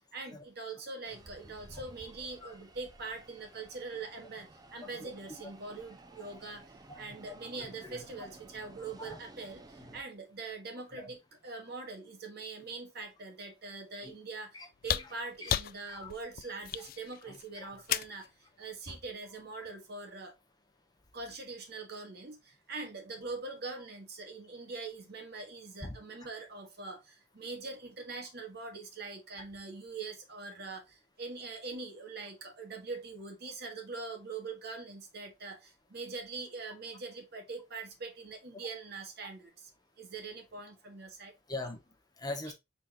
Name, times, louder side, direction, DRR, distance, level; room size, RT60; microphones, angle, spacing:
voice 1, 0.1-6.6 7.0-14.6 14.8-18.3 18.6-20.3 21.1-39.7 40.0-41.3 42.5-42.6, right 3 dB, 60° right, 1.5 m, -43 dB
sound 1, 1.0-10.0, right 2 dB, 20° right, 0.6 m, -54 dB
voice 2, 4.8-5.5 6.9-8.3 9.0-9.2 9.8-9.9 10.7-11.1 14.0-14.1 14.5-14.7 14.9-15.1 15.4-15.5 15.8-16.1 16.4-16.9 17.3-17.8 18.1-18.2 18.9-19.0 25.8-26.3 29.4-29.5 38.6-38.8 41.5-42.5, left 2 dB, 20° left, 1.0 m, -45 dB
sound 2, 14.7-18.3 19.7-19.8, left 11 dB, 50° left, 0.3 m, -34 dB
5.3 x 4.1 x 2.3 m
head